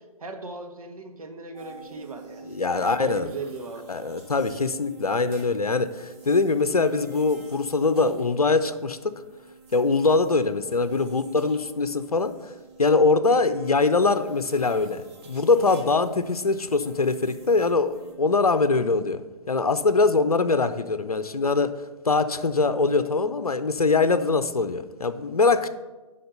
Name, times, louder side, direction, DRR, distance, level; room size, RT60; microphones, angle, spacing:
voice 1, 0.0-3.9, right 3 dB, 70° right, 5 dB, 1.1 m, -38 dB
sound 1, 1.5-18.1, right 3 dB, 45° right, 2.7 m, -48 dB
voice 2, 2.5-3.3 3.9-9.0 9.7-12.3 12.8-19.2 19.5-21.8 22.0-25.7, left 3 dB, 80° left, 12 dB, 0.6 m, -23 dB
7.8 x 5.7 x 6.6 m, 1.2 s
figure-of-eight pair, 130°, 19 cm